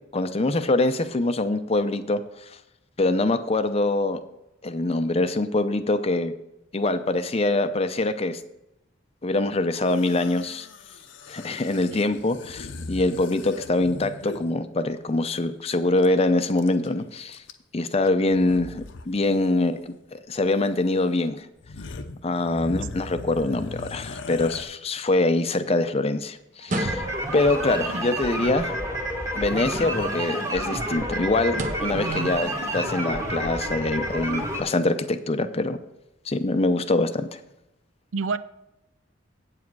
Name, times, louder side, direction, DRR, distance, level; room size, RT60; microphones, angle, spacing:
voice 1, 0.1-2.2 3.0-4.2 4.6-6.3 6.7-8.4 9.2-10.7 11.3-17.4 17.7-21.5 22.2-27.0 27.3-28.8 29.3-35.8 36.3-37.4, left 2 dB, 30° left, 10 dB, 0.5 m, -24 dB
sound 1, 9.8-14.6 16.0-16.1 16.3-16.9 17.3-17.8 18.3-19.1 19.3-19.5 20.6-20.7 21.2-21.3 21.6-24.6, left 3 dB, 65° left, 0.7 m, -39 dB
sound 2, 26.6-27.4 29.6-30.3 31.5-32.0, right 1 dB, 40° right, 0.8 m, -32 dB
sound 3, 26.7-34.6, right 1 dB, 15° right, 1.3 m, -29 dB
voice 2, 31.9-32.3 38.1-38.4, right 4 dB, 80° right, 14 dB, 0.5 m, -28 dB
8.7 x 7.3 x 4.6 m, 0.89 s
head